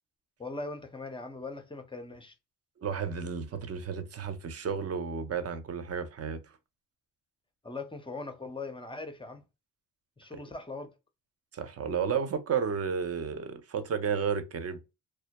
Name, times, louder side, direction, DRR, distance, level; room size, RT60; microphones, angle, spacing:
voice 1, 0.4-2.3 7.6-9.4 10.2-10.9, left 3 dB, 10° left, 0.5 m, -40 dB
voice 2, 2.8-6.4 10.3-10.4 11.5-14.8, right 6 dB, 35° right, 0.5 m, -32 dB
2.2 x 2.0 x 2.8 m
supercardioid pair, 65°, 44 cm